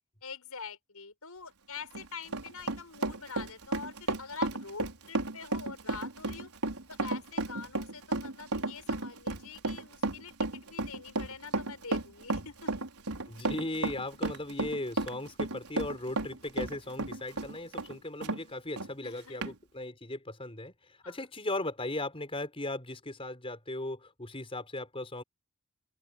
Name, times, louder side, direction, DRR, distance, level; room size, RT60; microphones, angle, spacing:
voice 1, 0.2-6.5 6.9-12.9 19.0-19.5 21.0-21.2, left 5 dB, 80° left, 6.9 m, -45 dB
Run, 1.8-18.4 18.8-18.9 19.4-19.5, right 2 dB, 90° right, 4.5 m, -33 dB
voice 2, 13.3-20.7 21.0-25.2, left 2 dB, 25° left, 5.0 m, -37 dB
open air
head